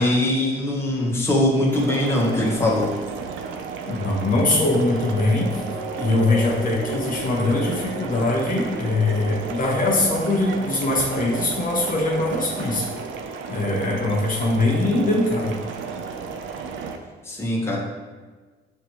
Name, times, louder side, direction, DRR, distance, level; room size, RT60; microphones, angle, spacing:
voice 1, 0.0-2.9 17.2-17.8, left 1 dB, 10° left, -3 dB, 0.9 m, -21 dB
sound 1, 1.7-17.0, right 5 dB, 75° right, 0.5 m, -33 dB
voice 2, 3.9-5.6 6.0-12.9 13.5-15.6, left 2 dB, 45° left, -3 dB, 0.8 m, -22 dB
sound 2, 4.8-11.4 12.1-12.2, left 1 dB, 15° right, 0.9 m, -37 dB
6.4 x 2.6 x 2.9 m, 1.3 s
cardioid pair, 90°, 20 cm